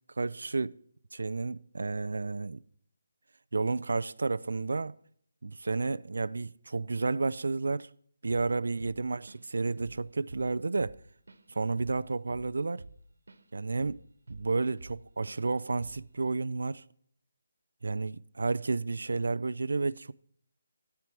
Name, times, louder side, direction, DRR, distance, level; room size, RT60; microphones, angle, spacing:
voice 1, 0.2-0.8 1.1-2.6 3.5-5.0 5.4-7.9 8.2-11.0 11.5-12.8 13.5-14.0 14.3-16.8 17.8-20.1, right 3 dB, 75° right, 0.4 m, -31 dB
Drum kit / Drum, 8.3-8.5 8.8-9.5 9.8-10.0 10.3-13.4 13.8-15.0 15.3-15.5 15.8-16.1, right 3 dB, 90° right, 1.3 m, -48 dB
13.5 x 4.7 x 7.5 m
hypercardioid pair, 180°, 0 cm